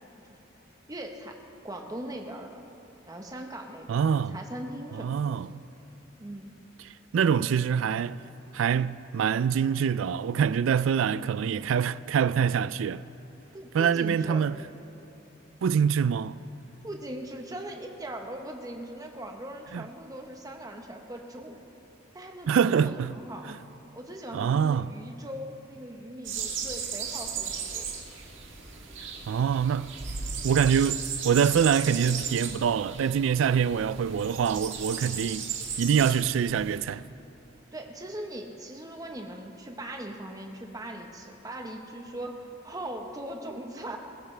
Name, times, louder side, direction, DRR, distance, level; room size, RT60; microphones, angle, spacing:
voice 1, 0.9-1.4 1.6-2.6 3.1-5.3 6.2-6.5 13.5-14.4 16.8-21.6 22.1-23.5 23.9-27.9 37.7-44.0, right 1 dB, 20° right, 1.1 m, -40 dB
voice 2, 3.9-4.4 5.0-5.6 7.1-8.2 8.5-13.0 13.7-14.6 15.6-16.4 19.7-19.8 22.5-23.1 23.5-23.6 24.3-24.9 29.3-29.9 30.4-35.5 35.8-37.0, right 7 dB, 85° right, 0.3 m, -25 dB
sound 1, 26.2-36.8, right 6 dB, 70° right, 1.7 m, -36 dB
20.5 x 15.0 x 3.3 m
head